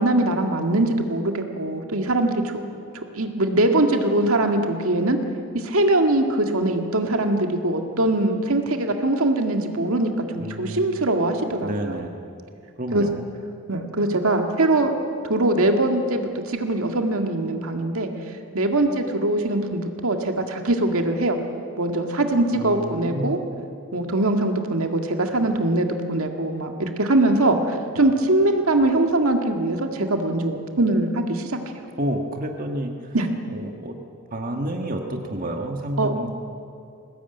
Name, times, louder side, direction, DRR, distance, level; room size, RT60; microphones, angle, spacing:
voice 1, 0.0-2.6 3.1-5.2 5.5-12.0 12.9-13.0 13.7-14.9 15.3-18.1 18.5-21.4 21.8-23.4 23.9-31.6 33.1-33.3 36.0-36.1, right 2 dB, 70° right, 4 dB, 2.0 m, -22 dB
voice 2, 10.4-10.8 11.6-12.2 12.8-13.2 22.5-23.6 32.0-33.1 33.5-34.0 34.3-36.3, right 1 dB, 40° right, 3 dB, 1.5 m, -29 dB
21.5 x 18.5 x 9.1 m, 2.4 s
head